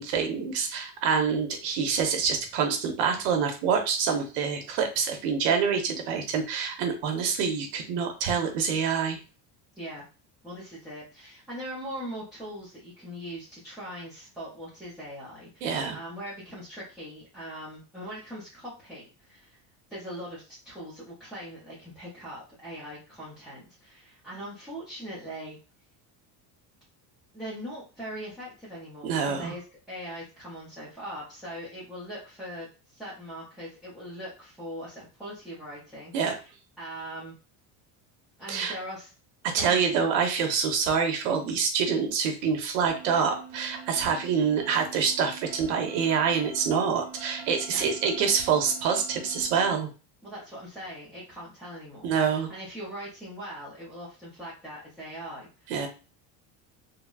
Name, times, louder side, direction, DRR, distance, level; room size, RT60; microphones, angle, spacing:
voice 1, 0.0-9.2 15.6-16.0 29.0-29.5 36.1-36.3 38.5-38.7 39.4-49.9 52.0-52.5 55.7-55.9, right 6 dB, 85° right, 4 dB, 0.9 m, -26 dB
voice 2, 10.4-19.6 19.9-25.6 27.3-36.4 36.8-37.3 38.4-39.1 39.5-39.8 47.7-47.9 50.2-55.7, equal, ahead, -10 dB, 0.3 m, -41 dB
sound 1, 42.9-49.7, right 6 dB, 35° right, 0.7 m, -45 dB
3.8 x 2.0 x 2.2 m, 0.33 s
cardioid pair, 180°, 42 cm